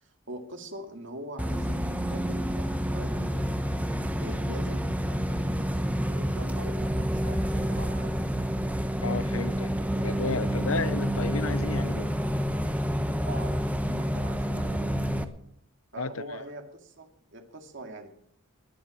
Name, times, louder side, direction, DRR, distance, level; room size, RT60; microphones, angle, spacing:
voice 1, 0.0-3.5 4.2-5.4 6.0-8.3 13.3-15.1 15.9-18.1, right 1 dB, 65° right, 2.2 m, -43 dB
Bus, 1.4-15.2, equal, 5° right, 0.9 m, -28 dB
voice 2, 9.0-9.7 10.0-12.1 16.0-16.4, left 4 dB, 75° left, 0.7 m, -33 dB
18.5 x 10.5 x 6.3 m
head